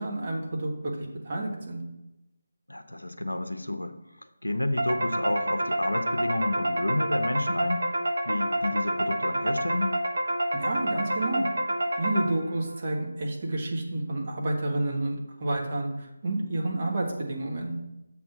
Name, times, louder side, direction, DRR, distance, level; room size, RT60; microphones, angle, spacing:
voice 1, 0.0-1.8 10.5-11.4 11.9-17.7, right 2 dB, 35° right, -1 dB, 1.3 m, -30 dB
voice 2, 2.7-3.9 4.4-7.9 8.2-9.9, left 1 dB, 80° left, 9 dB, 0.6 m, -30 dB
sound 1, 4.8-12.6, right 1 dB, 60° right, 0.8 m, -28 dB
7.1 x 3.5 x 6.1 m, 0.93 s
figure-of-eight pair, 155°, 0 cm